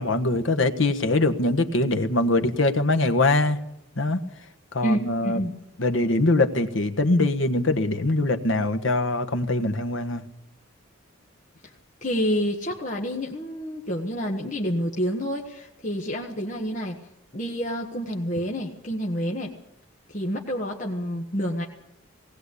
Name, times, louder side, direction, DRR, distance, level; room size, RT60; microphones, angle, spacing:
voice 1, 0.0-3.6 4.0-4.2 4.7-5.4 5.8-10.2, left 2 dB, 65° left, 8 dB, 1.4 m, -23 dB
voice 2, 4.8-5.5 12.0-17.0 17.3-19.5 20.1-21.6, equal, 35° left, -1 dB, 1.6 m, -28 dB
18.5 x 18.5 x 8.4 m, 0.81 s
head